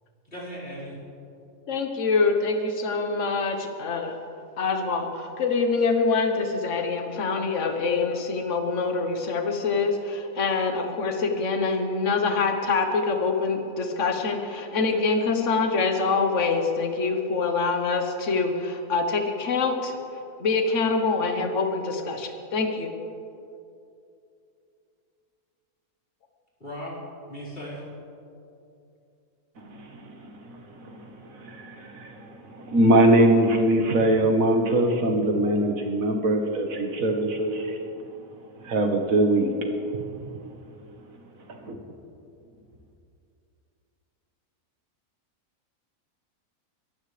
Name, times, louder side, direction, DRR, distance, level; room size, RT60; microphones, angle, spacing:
voice 1, 0.2-1.0 26.6-27.0 27.3-27.9, equal, 35° left, -9 dB, 5.0 m, -37 dB
voice 2, 1.7-4.2 4.6-20.0 20.4-22.9, left 4 dB, 55° left, 4 dB, 1.5 m, -25 dB
voice 3, 29.6-37.8 38.6-40.1 41.6-41.8, right 1 dB, 65° right, 3 dB, 1.8 m, -23 dB
22.5 x 14.5 x 3.4 m, 2.6 s
omnidirectional pair, 1.6 m